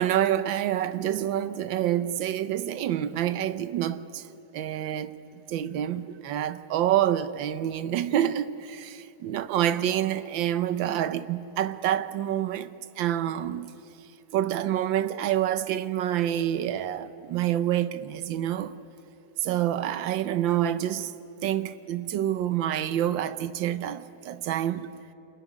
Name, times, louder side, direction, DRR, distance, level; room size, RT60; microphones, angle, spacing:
voice 1, 0.0-4.3 4.5-12.7 13.0-13.7 14.3-18.8 19.4-21.1 21.4-24.9, right 11 dB, 85° right, 1.6 m, -27 dB
26.5 x 21.0 x 10.0 m
omnidirectional pair, 2.0 m